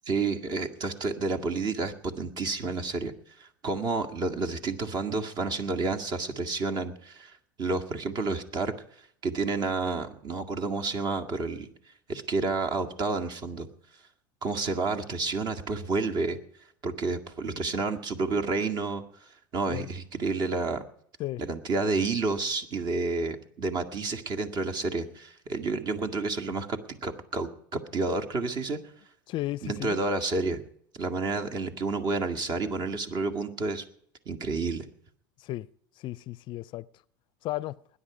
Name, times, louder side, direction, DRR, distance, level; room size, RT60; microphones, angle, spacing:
voice 1, 0.1-3.1 3.4-7.3 7.6-8.8 9.2-11.7 12.1-13.7 14.4-16.4 16.8-19.0 19.5-20.8 21.4-28.8 29.6-30.6 30.9-33.8 34.3-34.9, right 3 dB, 40° right, 2.0 m, -30 dB
voice 2, 29.3-30.0 35.4-35.7 36.0-36.9 37.4-37.8, left 16 dB, 50° left, 0.5 m, -34 dB
20.5 x 10.0 x 5.0 m
supercardioid pair, 105°, 11 cm